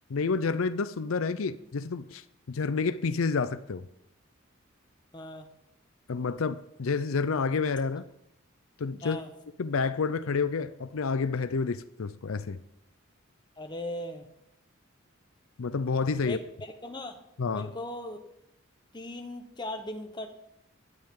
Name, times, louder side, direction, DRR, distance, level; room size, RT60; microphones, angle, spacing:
voice 1, 0.1-3.9 6.1-8.0 8.8-9.2 9.6-12.6 15.6-16.4 17.4-17.7, left 4 dB, 75° left, 0.5 m, -29 dB
voice 2, 5.1-5.5 9.0-9.3 13.6-14.3 16.2-17.2 17.5-18.2 18.9-20.3, left 1 dB, 20° left, 1.1 m, -38 dB
16.0 x 10.5 x 3.8 m
head